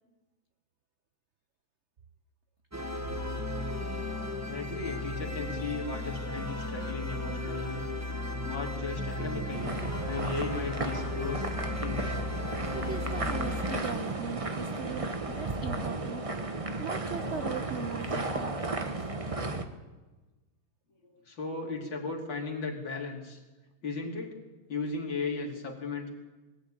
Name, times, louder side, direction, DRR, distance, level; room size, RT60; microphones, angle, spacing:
sound 1, 2.7-13.8, left 2 dB, 10° right, 1.2 m, -35 dB
voice 1, 4.5-7.8 8.4-9.8 10.1-11.5 11.8-12.2 21.0-23.4 23.8-24.4 24.7-26.1, left 4 dB, 65° left, 0 dB, 3.6 m, -36 dB
sound 2, 9.5-19.6, right 2 dB, 25° right, 0.7 m, -34 dB
voice 2, 12.7-16.3 16.8-18.9, right 6 dB, 65° right, 9 dB, 0.6 m, -39 dB
21.0 x 14.0 x 8.8 m, 1.2 s
omnidirectional pair, 2.3 m